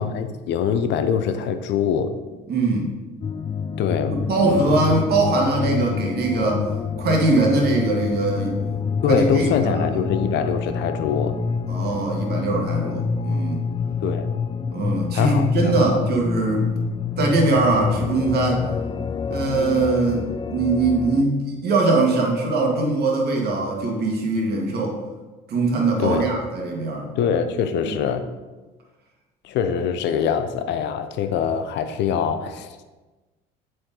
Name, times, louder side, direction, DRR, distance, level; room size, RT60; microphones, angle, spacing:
voice 1, 0.0-2.1 3.8-4.2 4.4-5.0 9.0-11.4 14.0-14.3 15.1-15.9 26.0-26.3 27.2-28.3 29.4-32.8, left 7 dB, 60° left, 9 dB, 0.7 m, -23 dB
voice 2, 2.5-3.0 4.1-6.7 7.0-8.6 9.1-10.0 11.7-13.7 14.7-16.7 17.2-18.7 19.3-25.0 25.5-27.1 27.8-27.9, right 3 dB, 50° right, 0 dB, 1.7 m, -21 dB
sound 1, 3.2-21.2, left 5 dB, 25° left, 0.3 m, -27 dB
7.6 x 4.6 x 3.8 m, 1.2 s
hypercardioid pair, 65°, 21 cm